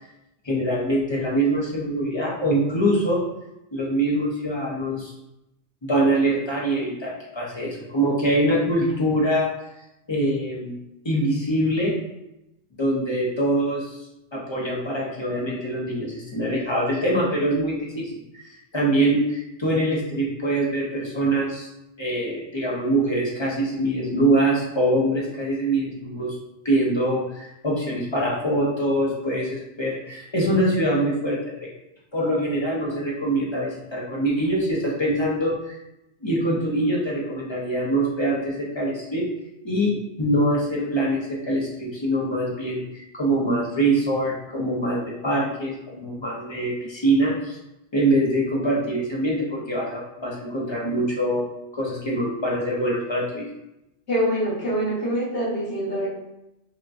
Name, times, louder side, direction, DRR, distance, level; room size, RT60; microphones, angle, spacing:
voice 1, 0.4-3.2 3.7-5.1 5.8-9.5 10.1-10.8 11.0-12.0 12.8-14.0 14.3-21.7 22.0-26.4 26.6-31.7 32.1-35.8 36.2-39.3 39.6-47.6 47.9-53.5, right 1 dB, 25° left, -4 dB, 0.7 m, -24 dB
voice 2, 54.1-56.1, equal, 65° left, -9 dB, 1.8 m, -25 dB
5.8 x 2.2 x 2.5 m, 0.88 s
omnidirectional pair, 1.3 m